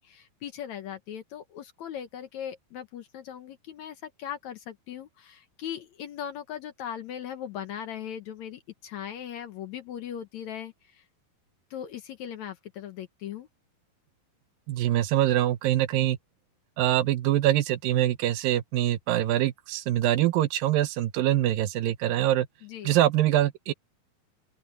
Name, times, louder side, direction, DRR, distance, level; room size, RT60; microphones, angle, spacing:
voice 1, 0.0-11.0 11.7-13.5 22.6-23.0, left 9 dB, 65° left, 2.0 m, -39 dB
voice 2, 14.7-16.2 16.8-22.5 22.8-23.7, right 13 dB, 80° right, 2.6 m, -24 dB
open air
omnidirectional pair, 4.0 m